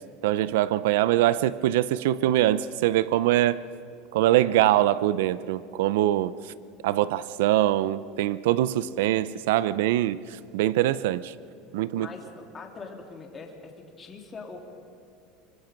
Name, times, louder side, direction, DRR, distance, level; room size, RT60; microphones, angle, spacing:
voice 1, 0.2-3.6 4.1-6.3 6.8-11.3 11.7-12.1, right 14 dB, 85° right, 0.6 m, -23 dB
voice 2, 11.9-13.7 14.0-14.6, left 4 dB, 20° left, 3.1 m, -42 dB
25.5 x 24.0 x 5.3 m
supercardioid pair, 140°, 0 cm